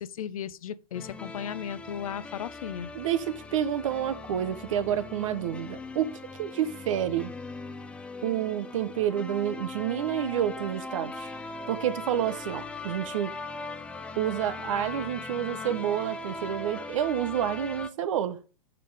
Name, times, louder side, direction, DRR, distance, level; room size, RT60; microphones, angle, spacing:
voice 1, 0.0-2.9, left 9 dB, 80° left, 0.7 m, -36 dB
sound 1, 0.9-17.9, left 3 dB, 5° left, 0.5 m, -40 dB
voice 2, 2.9-7.3 8.2-11.3 11.7-13.3 14.1-18.4, right 10 dB, 65° right, 1.0 m, -29 dB
6.8 x 5.4 x 4.9 m
hypercardioid pair, 145°, 18 cm